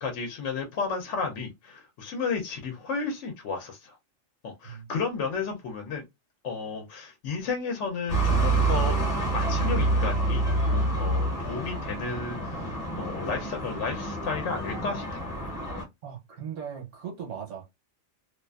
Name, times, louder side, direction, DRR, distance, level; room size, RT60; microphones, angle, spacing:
voice 1, 0.0-4.0 4.4-6.0 6.4-9.0 9.3-12.6 13.0-15.3, left 4 dB, 70° left, 0.9 m, -33 dB
sound 1, 8.1-15.8, right 2 dB, 35° left, 0.8 m, -27 dB
voice 2, 16.0-17.7, right 7 dB, 65° right, 1.1 m, -38 dB
2.5 x 2.3 x 2.2 m
omnidirectional pair, 1.3 m